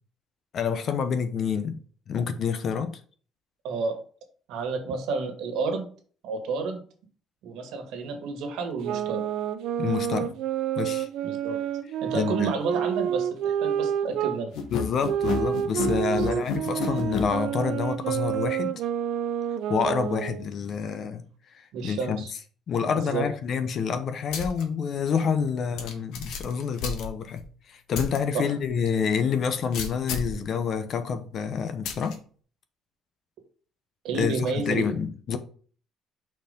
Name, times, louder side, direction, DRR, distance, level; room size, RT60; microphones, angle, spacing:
voice 1, 0.5-1.8 2.1-3.0 9.8-10.3 10.8-11.1 12.1-12.5 14.7-18.7 19.7-21.3 21.5-22.2 22.7-32.2 34.1-35.4, left 6 dB, 40° left, 0.8 m, -28 dB
voice 2, 3.6-4.0 4.5-5.9 6.2-6.8 7.4-9.2 11.2-11.6 12.0-14.5 16.1-16.4 21.7-22.3 23.0-23.3 28.3-28.5 34.0-35.0, right 4 dB, 85° right, 1.9 m, -30 dB
sound 1, 8.8-14.4 15.0-20.5, right 10 dB, 65° right, 0.6 m, -29 dB
sound 2, 14.5-17.3, left 5 dB, 70° left, 1.4 m, -29 dB
sound 3, 24.3-24.6 25.1-25.2 25.8-27.5 27.9-28.2 28.6-28.7 29.7-30.4 31.9-32.2, left 5 dB, 90° left, 1.5 m, -33 dB
6.0 x 4.5 x 5.2 m
cardioid pair, 175°, 0 cm